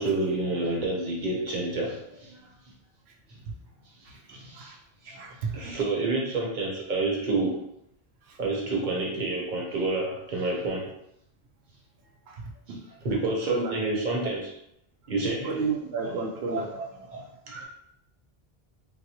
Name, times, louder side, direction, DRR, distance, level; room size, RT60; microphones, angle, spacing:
voice 1, 0.0-2.4 4.0-4.8 5.0-5.2 5.5-7.6 8.4-10.9 13.0-14.5 15.1-15.5 16.0-16.1 16.5-16.8 17.1-17.6, right 2 dB, 50° right, -1 dB, 0.9 m, -29 dB
voice 2, 4.0-4.8 5.2-5.8 8.2-8.4 12.3-12.8 13.2-13.7 15.4-16.7, right 4 dB, 85° right, 2 dB, 0.8 m, -33 dB
4.1 x 2.1 x 2.8 m, 0.78 s
omnidirectional pair, 1.0 m